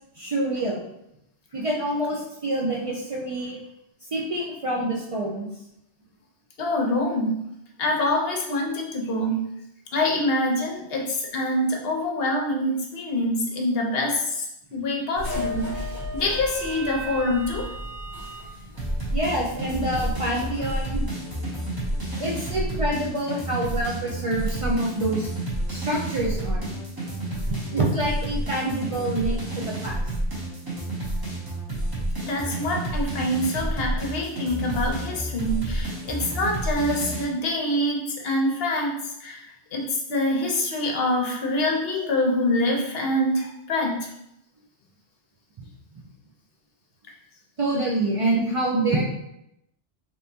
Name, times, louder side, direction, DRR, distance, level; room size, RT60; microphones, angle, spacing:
voice 1, 0.1-0.8 1.5-3.6 4.1-5.5 19.1-21.1 22.2-25.3 25.7-26.7 27.4-30.0 45.6-45.7 47.6-49.0, right 1 dB, 55° right, -3 dB, 0.3 m, -26 dB
voice 2, 6.6-7.4 7.8-9.5 9.9-14.5 14.7-17.7 32.2-44.1, left 1 dB, 60° left, 0 dB, 0.9 m, -25 dB
sound 1, 15.1-21.7, equal, 80° right, 1.4 m, -35 dB
sound 2, 18.8-37.2, right 1 dB, 20° right, 0.8 m, -30 dB
3.4 x 2.9 x 2.7 m, 0.81 s
omnidirectional pair, 1.2 m